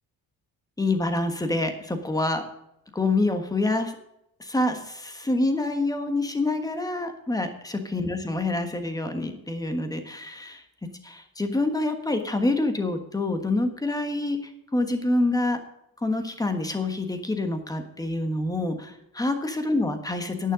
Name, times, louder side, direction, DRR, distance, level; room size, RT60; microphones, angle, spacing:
voice 1, 0.8-2.4 2.9-3.9 4.4-10.6 11.0-15.6 16.0-20.5, left 2 dB, 10° left, 7 dB, 1.3 m, -26 dB
11.0 x 9.7 x 5.0 m, 0.82 s
cardioid pair, 170°, 38 cm